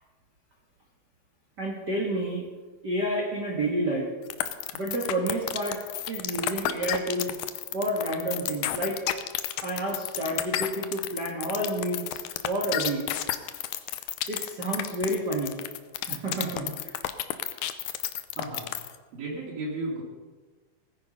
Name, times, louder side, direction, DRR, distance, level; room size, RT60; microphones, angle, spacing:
voice 1, 1.6-2.5 2.8-4.1 4.7-5.8 6.1-7.3 7.7-9.0 9.6-13.0 14.3-15.6 16.1-16.9, right 1 dB, 45° right, -1 dB, 1.3 m, -30 dB
sound 1, 4.3-19.0, left 13 dB, 85° left, 1.7 m, -31 dB
voice 2, 18.3-18.7 19.1-20.0, right 2 dB, 70° right, -6 dB, 4.5 m, -34 dB
17.5 x 9.8 x 5.4 m, 1.4 s
omnidirectional pair, 4.4 m